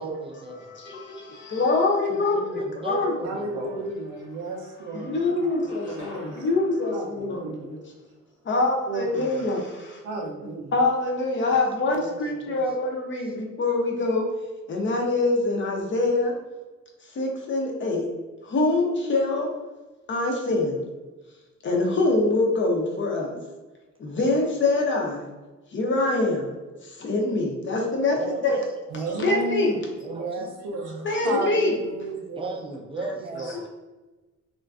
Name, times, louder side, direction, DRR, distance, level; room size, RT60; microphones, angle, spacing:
voice 1, 0.0-0.8 2.1-3.9 5.3-5.4 12.0-12.2 12.4-12.6 13.2-13.3 24.1-24.2 28.1-28.5 30.0-30.3 32.4-33.7, right 3 dB, 20° right, 0.3 m, -35 dB
voice 2, 0.7-3.2 3.6-3.7 4.9-7.8 8.4-10.0 10.7-14.3 14.7-16.3 17.0-18.1 18.4-19.5 20.1-20.8 21.6-23.4 24.0-25.3 25.7-26.5 26.8-28.6 28.9-29.7 31.0-31.7, left 2 dB, 40° left, 0.5 m, -25 dB
voice 3, 3.2-5.2 5.9-6.6 6.9-7.8 8.9-9.4 10.0-10.7 28.9-29.8 30.1-32.5 33.2-33.4, right 3 dB, 85° right, 0.5 m, -33 dB
sound 1, 3.8-3.9 4.2-5.0 5.4-8.0, equal, 85° left, 1.2 m, -46 dB
2.4 x 2.2 x 2.3 m
cardioid pair, 90°, 30 cm